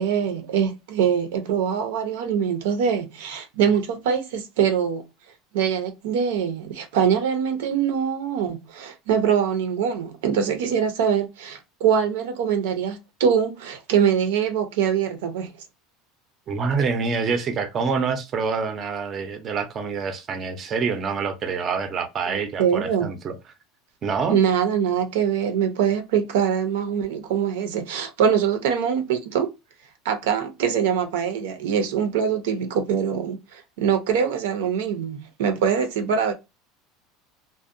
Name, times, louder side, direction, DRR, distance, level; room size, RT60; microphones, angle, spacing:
voice 1, 0.0-5.0 5.5-15.5 22.3-23.1 24.3-29.5 30.0-36.3, right 7 dB, 90° right, 0.5 m, -23 dB
voice 2, 16.5-23.4 24.0-24.4, right 5 dB, 30° right, 0.4 m, -26 dB
2.6 x 2.0 x 2.4 m
supercardioid pair, 140°, 0 cm